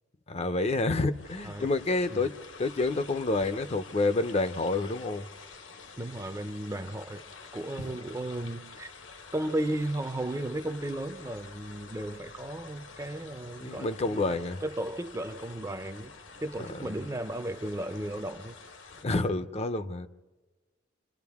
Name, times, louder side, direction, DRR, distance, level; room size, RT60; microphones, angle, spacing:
voice 1, 0.3-5.3 13.6-14.6 16.7-16.9 19.0-20.1, left 2 dB, 30° left, 0.6 m, -28 dB
sound 1, 1.1-19.0, left 4 dB, 65° left, 1.2 m, -48 dB
voice 2, 6.0-7.2 7.5-8.9 9.3-16.1 16.4-18.6, right 1 dB, 15° right, 0.5 m, -35 dB
27.5 x 27.0 x 3.6 m
head